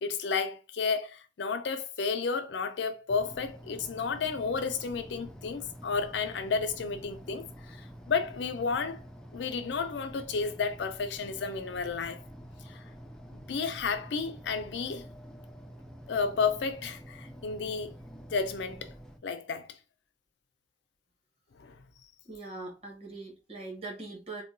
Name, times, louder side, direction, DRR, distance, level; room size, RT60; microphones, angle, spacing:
voice 1, 0.0-9.0 9.3-12.2 12.7-12.8 13.3-15.1 16.1-17.9 18.3-18.9 19.2-19.7 21.6-21.8, left 5 dB, 75° left, 0.5 m, -32 dB
sound 1, 3.1-19.2, equal, 5° left, 0.3 m, -48 dB
voice 2, 22.2-24.4, right 2 dB, 35° right, 1.2 m, -41 dB
3.6 x 2.2 x 2.5 m
head